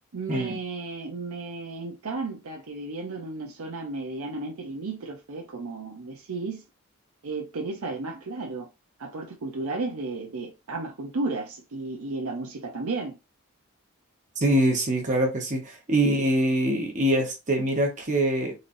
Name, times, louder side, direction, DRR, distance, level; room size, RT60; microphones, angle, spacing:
voice 1, 0.1-6.6 7.2-8.7 9.0-13.2, right 3 dB, 80° right, 0.6 m, -33 dB
voice 2, 14.4-18.5, right 1 dB, 35° right, 0.9 m, -24 dB
3.8 x 3.1 x 2.6 m
head